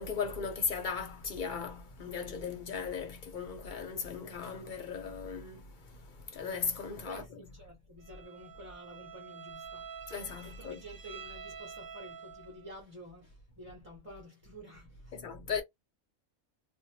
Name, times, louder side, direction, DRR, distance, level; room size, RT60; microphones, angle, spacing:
voice 1, 0.0-7.2 10.1-10.8 15.1-15.6, left 5 dB, 60° left, 0.5 m, -37 dB
voice 2, 7.0-9.9 10.4-15.2, equal, 10° right, 0.7 m, -50 dB
Bowed string instrument, 8.0-12.7, right 6 dB, 70° right, 0.5 m, -48 dB
2.5 x 2.1 x 2.8 m
omnidirectional pair, 1.5 m